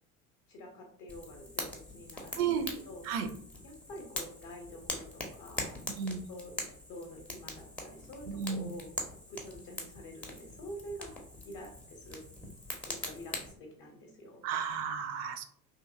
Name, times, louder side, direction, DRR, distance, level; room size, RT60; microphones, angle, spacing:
voice 1, 0.5-2.5 2.9-3.0 3.6-5.8 6.3-6.5 6.9-8.9 9.3-12.2 12.9-14.4, equal, 45° left, 1 dB, 0.7 m, -47 dB
Fire, 1.1-13.5, left 1 dB, 5° left, 0.5 m, -43 dB
voice 2, 2.3-2.7 3.0-3.3 5.9-6.2 8.3-8.7 14.4-15.4, right 7 dB, 50° right, 9 dB, 0.5 m, -33 dB
2.8 x 2.6 x 2.4 m, 0.63 s
figure-of-eight pair, 65°, 42 cm